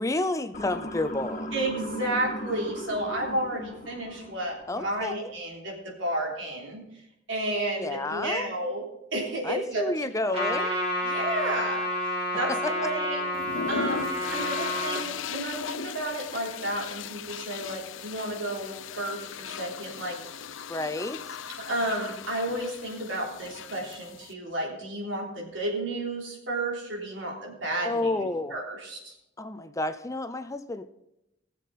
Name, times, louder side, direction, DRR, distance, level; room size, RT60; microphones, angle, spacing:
voice 1, 0.0-1.5 4.7-5.3 7.8-8.5 9.4-10.7 12.5-12.7 20.7-21.2 27.8-28.5 29.4-30.8, left 2 dB, 15° left, 10 dB, 0.6 m, -30 dB
Motor vehicle (road) / Siren, 0.5-4.7, equal, 40° left, 2.2 m, -37 dB
voice 2, 1.5-6.8 7.3-8.9 9.1-9.9 11.0-11.9 12.4-13.3 13.7-20.2 21.6-28.3 28.5-29.1, right 1 dB, 75° right, -1 dB, 3.6 m, -32 dB
Trumpet, 10.3-15.0, left 1 dB, 35° right, 3.0 m, -29 dB
sound 1, 13.3-24.3, left 6 dB, 90° left, 0.6 m, -38 dB
19.5 x 7.5 x 4.2 m, 0.86 s
head